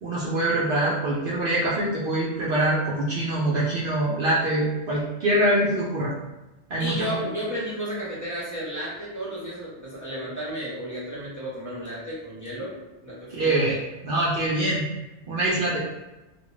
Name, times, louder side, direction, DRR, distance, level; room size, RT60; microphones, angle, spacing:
voice 1, 0.0-6.1 6.7-7.2 13.3-13.8 14.0-14.9 15.3-15.8, right 1 dB, 60° right, -6 dB, 0.7 m, -24 dB
voice 2, 6.8-12.7 13.0-13.6, equal, 20° left, -10 dB, 0.8 m, -33 dB
2.4 x 2.2 x 3.1 m, 1.0 s
omnidirectional pair, 1.2 m